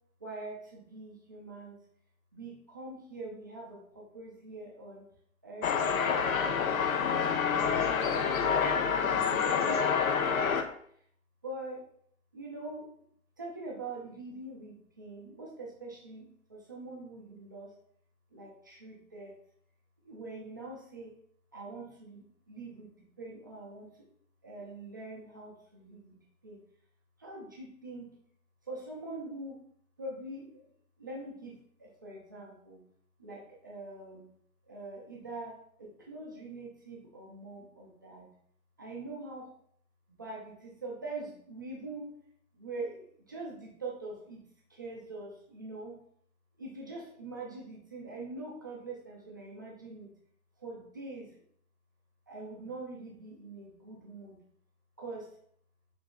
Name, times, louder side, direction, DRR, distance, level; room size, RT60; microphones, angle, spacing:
voice 1, 0.2-1.8 2.3-5.1 5.4-5.7 6.2-10.7 11.4-11.8 12.3-12.9 13.4-17.7 18.3-19.3 20.0-21.1 21.5-23.9 24.4-26.6 27.2-28.2 28.7-29.6 30.0-30.7 31.0-32.8 33.2-34.2 34.7-38.3 38.8-39.5 40.2-42.2 42.5-44.4 44.7-46.0 46.6-50.1 50.6-51.3 52.3-54.4 55.0-55.3, right 2 dB, 15° right, -3 dB, 0.3 m, -44 dB
sound 1, 5.6-10.6, left 6 dB, 70° left, 0.6 m, -27 dB
6.2 x 2.8 x 2.2 m, 0.64 s
figure-of-eight pair, 110°, 44 cm